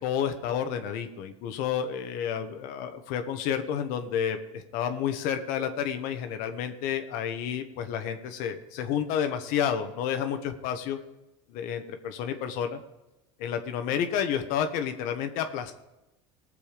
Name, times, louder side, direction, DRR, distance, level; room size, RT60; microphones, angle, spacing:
voice 1, 0.0-11.0 11.5-12.8 13.4-15.7, left 8 dB, 65° left, 7 dB, 1.2 m, -30 dB
18.5 x 6.9 x 5.1 m, 0.95 s
supercardioid pair, 105°, 16 cm